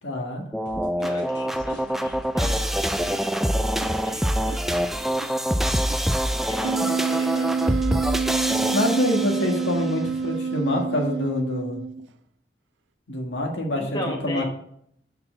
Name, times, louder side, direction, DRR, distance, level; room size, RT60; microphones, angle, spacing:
voice 1, 0.0-0.4 6.8-6.9 8.7-11.8 13.1-13.8 14.2-14.4, left 1 dB, 90° left, 1 dB, 1.7 m, -25 dB
sound 1, 0.5-9.8, equal, ahead, 0.3 m, -25 dB
sound 2, 0.7-6.1, right 1 dB, 70° left, 3.3 m, -41 dB
voice 2, 0.9-3.5 4.0-5.3 6.3-9.2 9.6-10.0 13.7-14.4, left 1 dB, 25° left, 1 dB, 1.2 m, -38 dB
Wind instrument woodwind instrument, 6.6-12.1, right 5 dB, 80° right, 0.3 m, -27 dB
6.6 x 5.8 x 3.8 m, 0.68 s
head